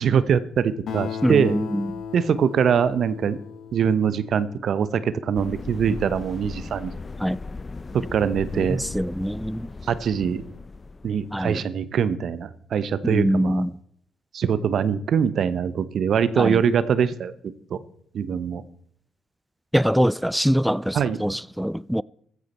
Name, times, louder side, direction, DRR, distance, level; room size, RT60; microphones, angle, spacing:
voice 1, 0.0-1.5 2.1-3.4 3.7-6.9 7.9-8.8 9.9-10.4 11.0-13.6 14.3-17.3 17.7-17.8 18.1-18.6 20.9-21.2, right 7 dB, 65° right, 1.0 m, -23 dB
Acoustic guitar, 0.9-4.7, left 7 dB, 70° left, 2.8 m, -36 dB
voice 2, 1.2-1.9 7.2-7.4 8.5-9.7 11.3-11.6 13.0-13.7 16.4-16.6 19.7-22.0, equal, ahead, 0.4 m, -23 dB
sound 1, 5.3-11.6, left 3 dB, 35° left, 0.8 m, -38 dB
15.0 x 15.0 x 4.4 m
supercardioid pair, 50°, 0 cm